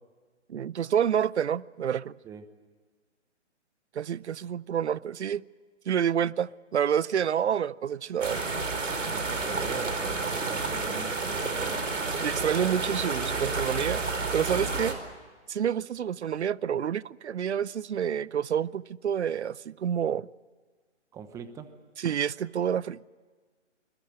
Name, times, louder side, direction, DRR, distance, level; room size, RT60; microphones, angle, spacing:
voice 1, 0.5-2.1 3.9-5.4 5.9-8.6 12.2-14.0 14.3-15.0 15.5-20.3 22.0-23.0, right 8 dB, 65° right, 0.7 m, -28 dB
sound 1, 8.2-14.9, right 3 dB, 85° right, 4.8 m, -30 dB
voice 2, 9.0-11.9 21.1-21.7, right 7 dB, 10° right, 1.0 m, -41 dB
25.5 x 21.5 x 7.7 m
hypercardioid pair, 150°, 36 cm